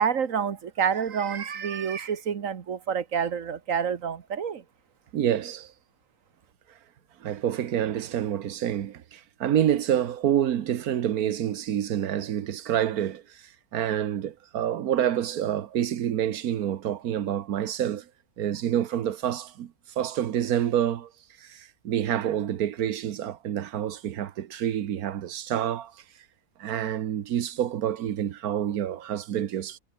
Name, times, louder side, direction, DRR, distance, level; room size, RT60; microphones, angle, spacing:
voice 1, 0.0-4.6, right 7 dB, 65° right, 1.6 m, -28 dB
voice 2, 5.1-5.7 7.2-13.4 13.7-18.1 18.4-21.1 21.4-25.9 26.6-29.8, right 10 dB, 85° right, 1.4 m, -28 dB
omnidirectional pair, 1.5 m